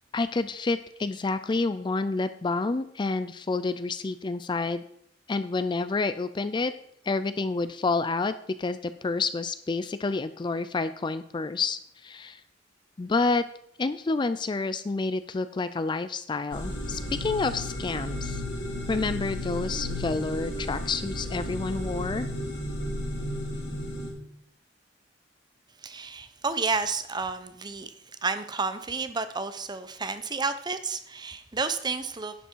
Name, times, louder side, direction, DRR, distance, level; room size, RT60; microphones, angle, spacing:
voice 1, 0.1-4.8 5.3-6.7 7.0-12.4 13.0-13.4 13.8-18.4 18.9-22.3, left 3 dB, 25° left, 12 dB, 0.4 m, -29 dB
sound 1, 16.5-24.1, left 1 dB, 70° left, 3.6 m, -33 dB
voice 2, 25.8-27.9 28.2-32.3, right 4 dB, 25° right, 11 dB, 0.7 m, -31 dB
11.0 x 8.0 x 4.6 m, 0.70 s
head